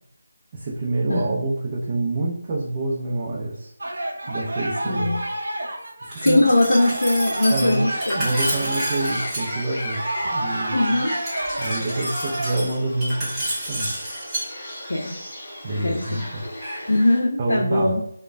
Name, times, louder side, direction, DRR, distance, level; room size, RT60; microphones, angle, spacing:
voice 1, 0.5-3.7 4.3-5.2 6.0-6.5 7.5-7.9 8.1-10.0 10.3-11.0 11.6-13.9 15.6-16.4 17.4-17.9, right 2 dB, 30° right, -4 dB, 0.5 m, -27 dB
sound 1, 3.8-12.5, right 1 dB, 75° right, 0.6 m, -30 dB
voice 2, 4.9-5.2 6.2-8.3 10.7-11.2 14.9-15.1 15.8-16.2 16.8-18.0, left 1 dB, 85° left, -1 dB, 0.5 m, -21 dB
Glass, 6.1-9.4 11.1-14.4, right 1 dB, 10° right, 0.9 m, -30 dB
Bird, 7.6-17.2, left 1 dB, 30° left, 1.3 m, -35 dB
3.0 x 2.1 x 2.4 m, 0.72 s
figure-of-eight pair, 165°, 0 cm